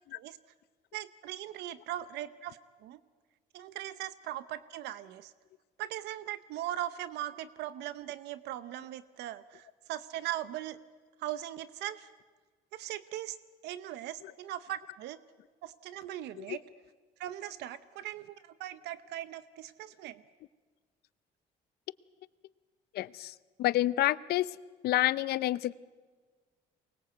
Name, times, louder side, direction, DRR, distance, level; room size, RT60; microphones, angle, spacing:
voice 1, 0.9-3.0 3.5-5.3 5.8-10.8 11.2-12.1 12.7-13.4 13.6-15.2 15.6-16.6 17.2-20.2, right 13 dB, 80° right, 15 dB, 0.8 m, -39 dB
voice 2, 22.9-24.5 24.8-25.7, left 15 dB, 70° left, 19 dB, 0.6 m, -29 dB
24.0 x 20.5 x 8.0 m, 1.4 s
cardioid pair, 110°, 17 cm